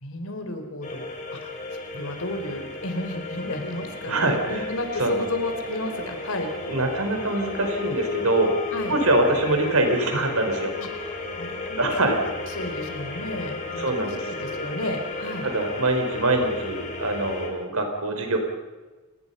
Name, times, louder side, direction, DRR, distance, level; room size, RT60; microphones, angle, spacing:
voice 1, 0.0-1.0 1.3-1.5 1.9-6.5 8.7-9.0 10.8-12.2 12.5-13.8 14.3-15.5, left 1 dB, 75° left, 5 dB, 4.2 m, -32 dB
sound 1, 0.8-17.5, left 3 dB, 35° left, 4.7 m, -34 dB
voice 2, 4.1-4.7 5.0-5.2 6.7-8.5 8.9-10.7 11.8-12.2 13.8-14.3 15.4-18.4, right 2 dB, 85° right, 5 dB, 4.7 m, -24 dB
29.5 x 19.5 x 5.7 m, 1.2 s
head